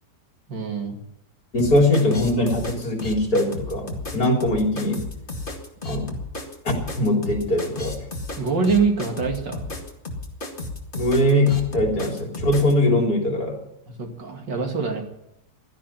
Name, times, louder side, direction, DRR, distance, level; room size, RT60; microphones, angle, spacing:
voice 1, 0.5-1.0 8.4-9.7 14.0-15.0, right 5 dB, 90° right, 3 dB, 3.2 m, -24 dB
voice 2, 1.5-5.1 5.8-6.1 6.6-8.0 10.9-13.6, left 1 dB, 55° left, 2 dB, 4.1 m, -21 dB
sound 1, 1.6-12.7, left 2 dB, 30° left, 2.3 m, -33 dB
16.5 x 12.5 x 5.9 m, 0.81 s
omnidirectional pair, 1.9 m